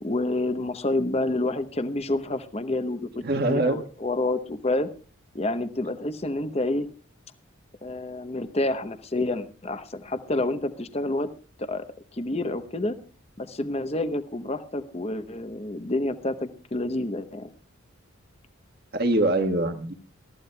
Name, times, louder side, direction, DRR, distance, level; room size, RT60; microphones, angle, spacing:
voice 1, 0.0-4.9 5.3-6.9 7.8-11.3 11.6-11.9 12.1-12.9 13.4-17.5, left 2 dB, 30° left, 11 dB, 0.8 m, -28 dB
voice 2, 3.2-3.8 18.9-19.9, right 2 dB, 45° right, 7 dB, 1.4 m, -23 dB
22.5 x 14.0 x 2.2 m, 0.36 s
head